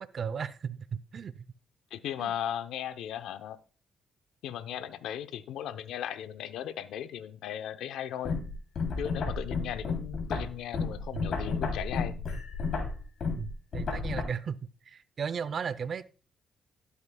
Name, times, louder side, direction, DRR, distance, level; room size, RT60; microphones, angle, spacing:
voice 1, 0.0-1.3 2.2-2.3 11.1-11.3 13.4-16.1, right 6 dB, 50° right, 0.6 m, -36 dB
voice 2, 1.9-3.6 4.4-8.4 9.0-12.2, left 10 dB, 85° left, 0.7 m, -37 dB
sound 1, 8.3-14.2, left 4 dB, 60° left, 3.1 m, -32 dB
12.5 x 8.3 x 2.3 m
cardioid pair, 90°, 0 cm